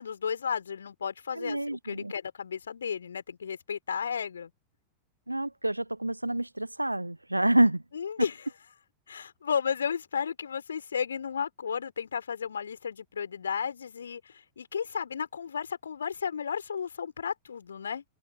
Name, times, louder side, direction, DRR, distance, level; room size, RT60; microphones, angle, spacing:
voice 1, 0.0-4.5 7.9-8.5 9.1-18.0, left 7 dB, 70° left, 4.4 m, -33 dB
voice 2, 1.4-2.1 5.3-7.8, right 1 dB, 85° right, 0.8 m, -27 dB
open air
figure-of-eight pair, 90°, 0 cm